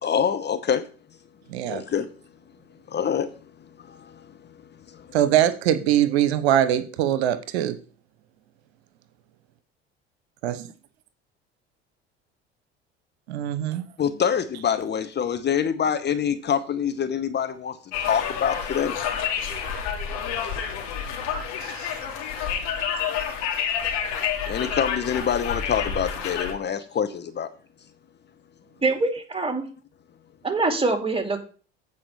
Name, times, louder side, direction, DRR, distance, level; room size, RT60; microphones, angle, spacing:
voice 1, 0.0-0.8 1.7-2.1 2.9-3.3 3.9-4.2 4.9-5.0 14.0-19.0 24.5-27.5, left 8 dB, 30° left, 1.0 m, -25 dB
voice 2, 1.5-1.8 5.1-7.8 10.4-10.7 13.3-13.9 21.6-21.9, right 11 dB, 70° right, 0.9 m, -22 dB
Conversation, 17.9-26.5, left 7 dB, 65° left, 2.6 m, -29 dB
voice 3, 28.8-29.7 30.4-31.4, right 3 dB, 15° right, 2.7 m, -24 dB
8.7 x 4.7 x 6.9 m
hypercardioid pair, 65°, 33 cm